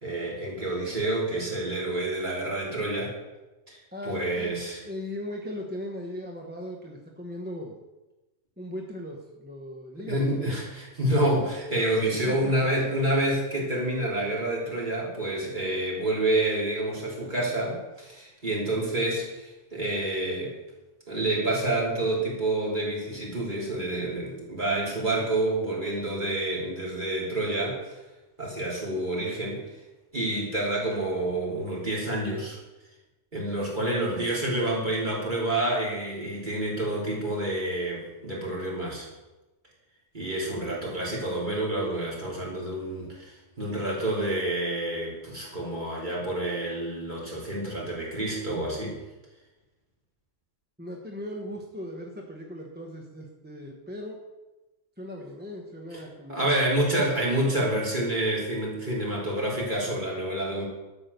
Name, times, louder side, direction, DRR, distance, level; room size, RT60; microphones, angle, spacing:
voice 1, 0.0-3.2 3.7-3.8 4.1-4.8 10.0-20.5 21.1-28.0 28.4-29.6 30.1-32.6 33.3-39.1 40.1-49.0 56.3-60.6, right 1 dB, 35° right, -4 dB, 3.6 m, -28 dB
voice 2, 3.9-4.6 4.8-7.8 8.6-10.6 12.1-12.7 50.8-54.2 55.0-56.7, left 1 dB, 10° right, 0 dB, 1.1 m, -38 dB
12.0 x 6.7 x 6.8 m, 1.1 s
omnidirectional pair, 1.4 m